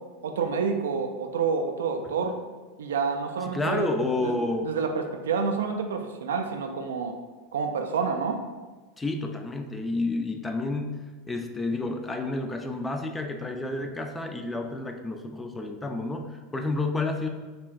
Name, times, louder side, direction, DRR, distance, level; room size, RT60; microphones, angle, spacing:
voice 1, 0.2-2.4 2.8-3.9 4.2-4.4 4.6-7.1 7.5-8.4, right 5 dB, 85° right, 5 dB, 0.4 m, -28 dB
voice 2, 3.5-4.7 9.0-11.0 11.3-17.3, left 2 dB, 15° left, 5 dB, 0.4 m, -30 dB
4.4 x 3.0 x 2.4 m, 1.3 s
hypercardioid pair, 95°, 0 cm